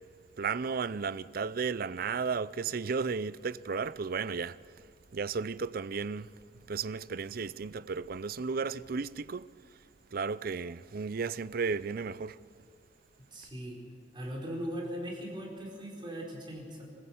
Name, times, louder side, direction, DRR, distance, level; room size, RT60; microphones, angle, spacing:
voice 1, 0.4-4.6 5.1-6.3 6.7-9.5 10.1-12.4, right 5 dB, 55° right, 0.5 m, -34 dB
voice 2, 13.3-13.8 14.1-16.8, equal, 25° right, 4.6 m, -39 dB
25.5 x 15.5 x 7.9 m
head